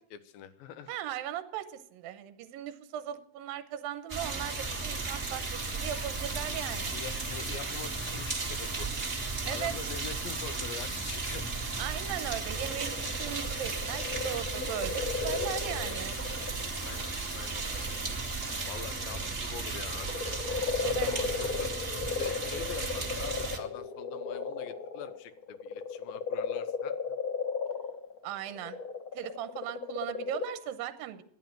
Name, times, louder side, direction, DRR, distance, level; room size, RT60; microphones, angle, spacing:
voice 1, 0.1-0.9 6.9-8.9 9.5-11.5 16.8-17.6 18.6-20.1 20.9-21.7 22.1-26.9, left 9 dB, 80° left, 12 dB, 2.7 m, -44 dB
voice 2, 0.9-7.0 9.5-9.9 11.8-16.2 20.8-21.1 28.2-28.8 29.1-31.2, right 11 dB, 80° right, 11 dB, 2.7 m, -38 dB
sound 1, 4.1-23.6, right 3 dB, 25° right, 1.8 m, -35 dB
sound 2, 4.4-19.4, equal, 5° left, 1.6 m, -49 dB
sound 3, 12.1-17.1 17.6-19.3 19.7-30.4, left 5 dB, 40° left, 1.3 m, -36 dB
12.5 x 11.0 x 7.4 m, 0.67 s
omnidirectional pair, 4.2 m